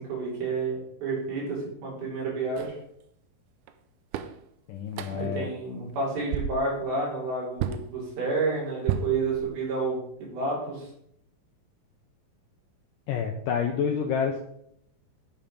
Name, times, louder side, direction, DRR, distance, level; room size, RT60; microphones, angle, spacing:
voice 1, 0.0-2.7 5.1-10.9, right 3 dB, 70° right, -6 dB, 5.9 m, -30 dB
sound 1, 2.6-2.8 3.7-3.8 4.1-4.4 4.9-5.3 5.8-6.0 6.3-6.7 7.6-7.9 8.9-9.8, right 9 dB, 90° right, 2.7 m, -32 dB
voice 2, 4.7-5.5 13.1-14.4, left 7 dB, 75° left, 3 dB, 2.1 m, -28 dB
10.5 x 5.8 x 5.1 m, 0.72 s
omnidirectional pair, 4.4 m